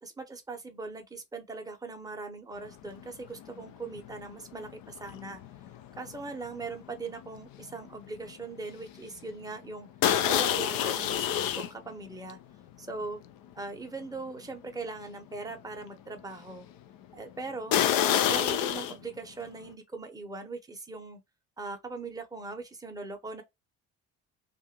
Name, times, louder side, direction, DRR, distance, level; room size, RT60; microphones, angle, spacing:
voice 1, 0.0-5.4 6.0-9.9 10.3-12.4 12.8-13.2 13.6-16.7 17.1-17.8 18.3-21.2 21.6-23.4, right 3 dB, 10° right, 0.8 m, -40 dB
sound 1, 2.8-3.1 3.4-8.0 8.3-8.6 9.0-9.1 10.0-11.7 12.3-12.4 13.0-13.1 13.6-13.7 17.7-18.9, left 10 dB, 55° left, 0.5 m, -28 dB
2.5 x 2.5 x 2.9 m
hypercardioid pair, 55°, 41 cm